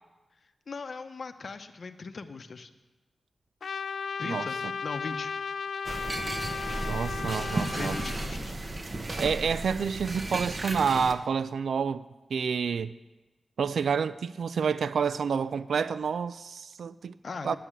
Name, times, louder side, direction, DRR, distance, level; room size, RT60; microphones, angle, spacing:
voice 1, 0.7-2.7 4.2-5.3 7.8-8.6 17.2-17.6, left 4 dB, 50° left, 0.8 m, -39 dB
Trumpet, 3.6-8.3, left 5 dB, 65° left, 0.3 m, -35 dB
sound 1, 5.9-11.1, right 2 dB, 35° right, 0.8 m, -34 dB
voice 2, 6.9-8.0 9.2-12.1 12.3-12.9 13.6-17.1 17.4-17.6, right 6 dB, 80° right, 0.3 m, -29 dB
10.0 x 9.4 x 8.8 m
wide cardioid pair, 160°, 0 cm